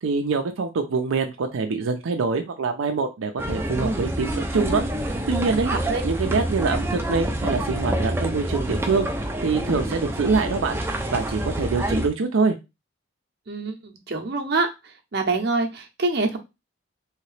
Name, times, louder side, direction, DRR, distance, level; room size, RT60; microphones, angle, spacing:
voice 1, 0.0-4.8 5.3-5.7 6.0-10.8 11.1-12.6, right 4 dB, 85° right, 5 dB, 0.5 m, -25 dB
sound 1, 3.4-12.1, right 1 dB, 10° right, 0.4 m, -27 dB
voice 2, 5.6-6.0 13.5-14.7 15.1-16.4, right 3 dB, 55° right, 3 dB, 0.7 m, -25 dB
3.2 x 2.8 x 3.2 m, 0.24 s
head